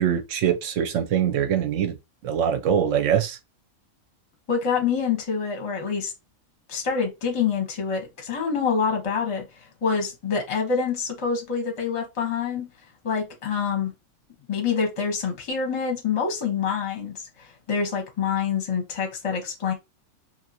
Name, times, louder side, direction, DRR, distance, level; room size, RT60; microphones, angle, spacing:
voice 1, 0.0-2.0 2.2-3.4, right 9 dB, 65° right, 0.9 m, -23 dB
voice 2, 4.5-6.1 6.7-9.4 9.8-12.7 13.0-13.9 14.5-17.1 17.7-19.7, left 6 dB, 30° left, 0.7 m, -26 dB
2.7 x 2.7 x 2.7 m
omnidirectional pair, 1.5 m